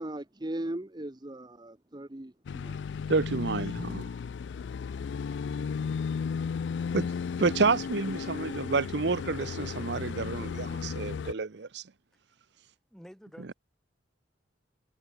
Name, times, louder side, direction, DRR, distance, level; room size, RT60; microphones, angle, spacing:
voice 1, 0.0-2.8, right 1 dB, 25° right, 0.9 m, -38 dB
sound 1, 2.5-11.3, left 6 dB, 65° left, 0.3 m, -34 dB
voice 2, 3.1-4.1 6.9-7.1 7.4-11.8, right 4 dB, 60° right, 0.7 m, -29 dB
voice 3, 12.9-13.5, equal, ahead, 3.9 m, -49 dB
head